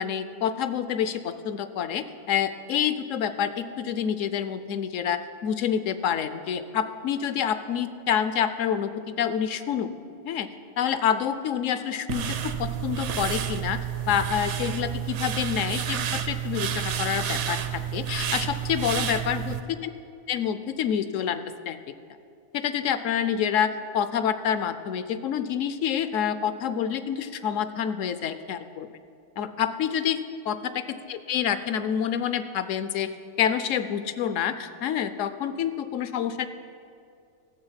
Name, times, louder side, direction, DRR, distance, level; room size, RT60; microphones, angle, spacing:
voice 1, 0.0-8.9 9.2-9.9 10.2-10.5 10.8-13.8 14.1-19.5 20.3-21.8 22.5-28.9 29.4-30.2 30.4-30.6 31.1-33.1 33.4-36.5, left 8 dB, 75° left, 11 dB, 0.9 m, -27 dB
sound 1, 12.1-19.6, right 9 dB, 65° right, 0.9 m, -30 dB
13.5 x 7.4 x 5.6 m, 2.4 s
omnidirectional pair, 1.4 m